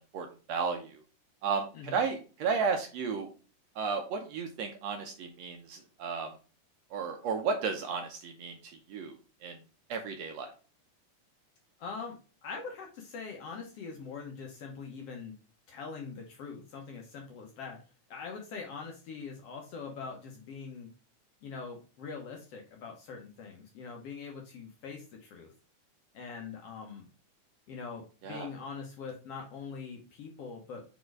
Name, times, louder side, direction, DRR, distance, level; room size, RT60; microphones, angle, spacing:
voice 1, 0.1-1.0 1.4-3.3 3.7-6.3 6.9-9.2 9.4-9.6 9.9-10.5 28.2-28.5, right 5 dB, 70° right, 4 dB, 1.7 m, -33 dB
voice 2, 11.8-12.2 12.4-15.3 15.7-17.8 18.1-20.9 21.4-25.5 26.1-27.1 27.7-30.8, left 5 dB, 65° left, 1 dB, 1.7 m, -43 dB
5.2 x 4.3 x 4.6 m, 0.36 s
omnidirectional pair, 3.6 m